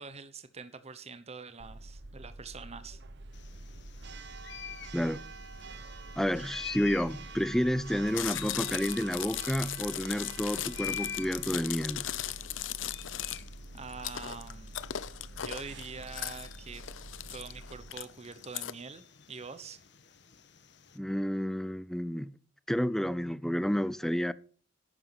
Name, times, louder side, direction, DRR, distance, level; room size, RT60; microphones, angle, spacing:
voice 1, 0.0-3.0 13.7-14.8 15.3-16.9 17.3-19.8, right 4 dB, 35° right, 1.0 m, -45 dB
Church bell, 1.6-17.9, right 2 dB, 65° right, 1.0 m, -47 dB
sound 1, 3.3-21.0, left 9 dB, 65° left, 1.4 m, -48 dB
voice 2, 6.2-12.1 20.9-22.3 22.7-24.3, equal, ahead, 0.5 m, -30 dB
Chewing mastication, 8.1-18.7, left 12 dB, 90° left, 0.7 m, -38 dB
11.5 x 9.4 x 6.0 m
head